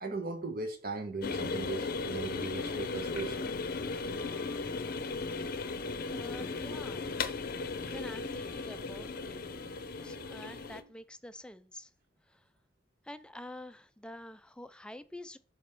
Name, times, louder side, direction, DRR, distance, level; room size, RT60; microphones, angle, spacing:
voice 1, 0.0-3.5, right 3 dB, 55° right, 5 dB, 1.1 m, -38 dB
sound 1, 1.2-10.8, left 4 dB, 55° left, 0.6 m, -36 dB
Wind instrument woodwind instrument, 2.5-11.0, right 3 dB, 70° right, 1.3 m, -58 dB
voice 2, 6.1-7.1 7.8-9.7 10.0-11.9 12.3-12.4 13.0-15.4, left 1 dB, 5° left, 13 dB, 0.4 m, -47 dB
5.3 x 5.0 x 5.8 m, 0.42 s
head